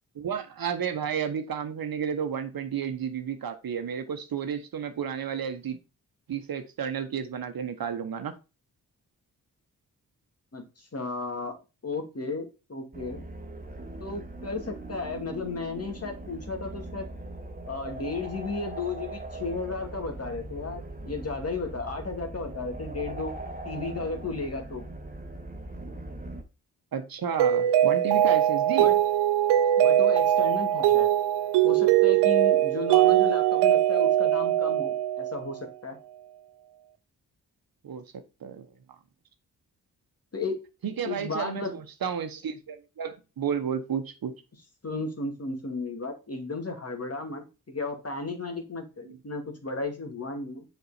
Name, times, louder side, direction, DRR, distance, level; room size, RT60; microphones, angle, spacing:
voice 1, 0.1-5.8 6.3-8.3 26.9-28.9 37.8-38.0 38.4-38.7 40.8-44.3 49.1-49.2, right 7 dB, 60° right, 1.1 m, -32 dB
voice 2, 10.5-11.5 11.8-13.3 14.0-17.1 17.6-23.3 23.6-24.9 28.8-29.0 29.8-31.1 31.6-36.0 40.3-40.6 41.0-41.7 44.8-50.6, left 3 dB, 35° left, 2.3 m, -34 dB
sound 1, 12.9-26.4, right 2 dB, 20° right, 1.6 m, -40 dB
Mallet percussion, 27.4-35.6, right 12 dB, 85° right, 0.5 m, -21 dB
6.7 x 4.5 x 4.2 m
supercardioid pair, 40°, 40 cm